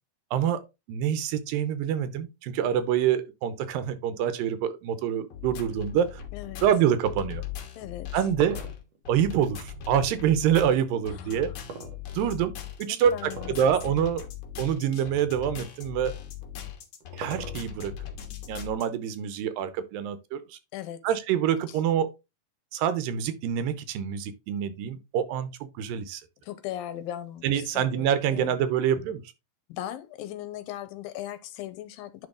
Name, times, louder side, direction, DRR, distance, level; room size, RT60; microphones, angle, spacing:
voice 1, 0.3-0.6 0.9-6.2 6.6-7.4 8.1-8.6 9.1-11.5 12.1-12.5 12.8-14.2 14.6-16.1 17.2-17.9 18.5-20.6 21.0-22.1 22.7-25.5 25.8-26.2 27.4-29.2, right 9 dB, 80° right, 2.5 m, -26 dB
sound 1, 5.3-18.9, left 10 dB, 65° left, 2.6 m, -40 dB
voice 2, 6.3-6.6 7.8-8.1 11.1-11.5 13.1-13.5 13.9-14.1 20.7-21.0 26.4-28.1 28.3-28.6 29.7-32.3, left 12 dB, 85° left, 2.6 m, -38 dB
sound 2, 7.9-10.3 11.7-12.6 13.3-13.7 14.1-14.2 14.9-15.0 16.4-17.9, right 4 dB, 60° right, 1.9 m, -40 dB
10.5 x 3.8 x 3.7 m
omnidirectional pair, 4.1 m